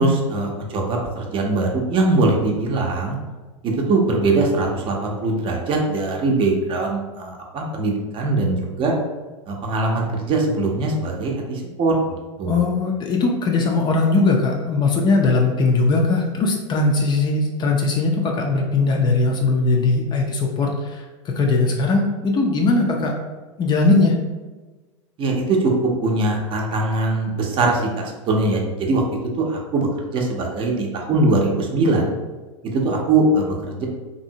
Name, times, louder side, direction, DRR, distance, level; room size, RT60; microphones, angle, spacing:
voice 1, 0.0-3.2 3.6-8.9 9.5-11.9 12.4-12.6 25.2-25.7 26.0-29.0 29.4-29.9 30.1-32.1 32.7-33.9, right 2 dB, 30° right, 0 dB, 0.6 m, -21 dB
voice 2, 12.5-23.1 23.6-24.2, left 3 dB, 25° left, 1 dB, 0.4 m, -19 dB
2.7 x 2.6 x 2.6 m, 1.3 s
figure-of-eight pair, 90°, 16 cm